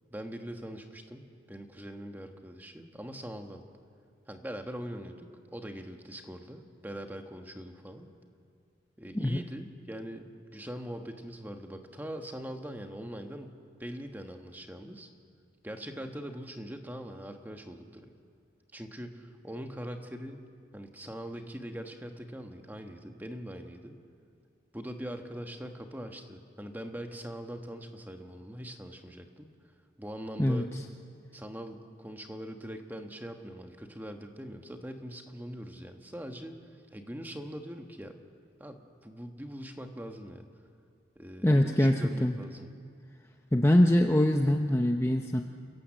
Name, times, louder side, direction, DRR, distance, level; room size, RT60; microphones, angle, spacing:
voice 1, 0.1-3.6 4.3-8.1 9.0-15.1 15.6-18.1 18.7-20.5 20.7-24.0 24.7-29.5 30.0-30.7 31.3-36.6 36.9-38.2 38.6-40.5 41.1-42.7, equal, 10° right, 5 dB, 1.3 m, -42 dB
voice 2, 41.4-42.4 43.5-45.4, left 1 dB, 15° left, 3 dB, 0.6 m, -23 dB
29.0 x 17.0 x 7.4 m, 2.4 s
head